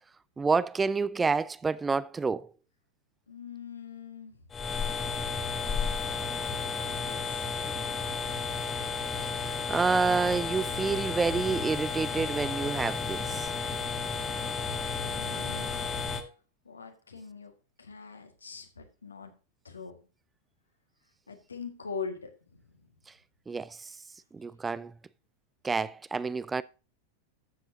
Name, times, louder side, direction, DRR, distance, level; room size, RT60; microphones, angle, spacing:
voice 1, 0.4-2.5 9.2-13.5 23.5-23.9 24.3-24.9 25.6-26.6, right 4 dB, 15° right, 0.3 m, -29 dB
voice 2, 3.3-4.4 6.8-7.5 15.0-15.7 16.7-17.5 17.8-19.3 19.6-20.0 21.3-22.6, left 5 dB, 75° left, 1.8 m, -42 dB
sound 1, 4.5-16.2, left 5 dB, 20° left, 1.3 m, -32 dB
13.0 x 7.7 x 2.8 m
figure-of-eight pair, 90°, 0 cm